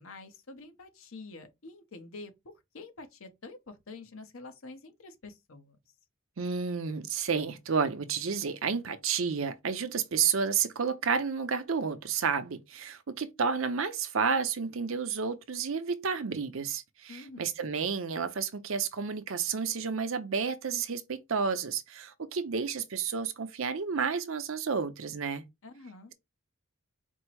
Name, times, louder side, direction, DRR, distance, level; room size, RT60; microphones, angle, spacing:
voice 1, 0.0-2.3 2.7-5.8 17.1-17.5 25.6-26.1, left 3 dB, 70° left, 0.9 m, -47 dB
voice 2, 6.4-25.4, right 6 dB, 65° right, 0.6 m, -31 dB
4.4 x 2.0 x 4.5 m
head